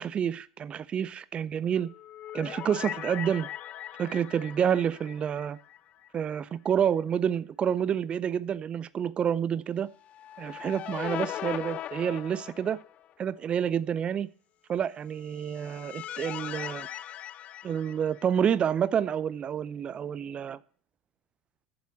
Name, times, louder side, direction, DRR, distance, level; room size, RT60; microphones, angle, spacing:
voice 1, 0.0-1.9 2.3-3.5 4.0-5.6 6.1-9.9 10.4-12.8 13.2-14.3 14.7-16.9 17.6-20.6, right 8 dB, 35° right, 0.5 m, -28 dB
sound 1, 1.8-6.1 6.4-6.5 10.0-13.1 15.2-18.6, left 12 dB, 40° left, 0.4 m, -40 dB
7.5 x 7.2 x 7.5 m
figure-of-eight pair, 75°, 3 cm